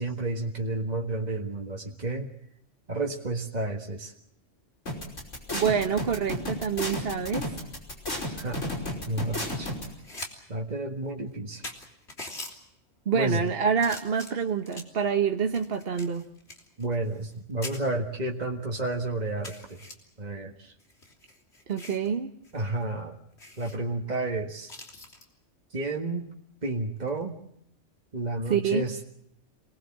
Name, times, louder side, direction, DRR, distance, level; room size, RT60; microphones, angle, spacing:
voice 1, 0.0-2.3 2.9-4.1 8.4-8.6 9.1-9.7 10.5-11.6 13.1-13.4 16.8-19.8 20.2-20.7 22.5-23.1 23.6-24.7 25.7-26.3 26.6-27.4 28.1-29.0, right 2 dB, 35° right, 0 dB, 1.8 m, -31 dB
sound 1, 4.9-9.8, left 1 dB, 85° left, 5.8 m, -32 dB
voice 2, 5.5-7.5 13.1-16.2 21.7-22.3 28.5-28.8, right 6 dB, 55° right, 5 dB, 1.3 m, -26 dB
sound 2, 9.9-10.3 10.7-10.8 11.3-11.4 11.6-12.5 13.2-13.5 13.8-15.0 15.5-17.4 17.6-17.8 18.4-18.5 18.8-18.9 19.4-19.9 20.8-22.1 22.4-22.6 22.9-23.0 23.4-23.8 24.7-25.3 27.0-27.2, left 2 dB, 60° left, 3.6 m, -42 dB
27.0 x 20.0 x 7.4 m, 0.75 s
omnidirectional pair, 1.2 m